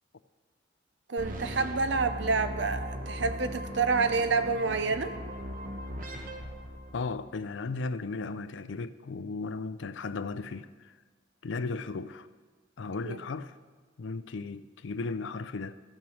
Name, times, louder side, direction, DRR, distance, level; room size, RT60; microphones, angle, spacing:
voice 1, 1.1-5.2 13.0-13.2, right 4 dB, 65° right, 0.7 m, -28 dB
sound 1, 1.2-7.3, equal, 45° right, 0.9 m, -38 dB
voice 2, 6.9-10.9 11.4-12.3 12.8-13.6 14.0-15.8, left 4 dB, 75° left, 0.5 m, -35 dB
13.5 x 6.0 x 6.3 m
head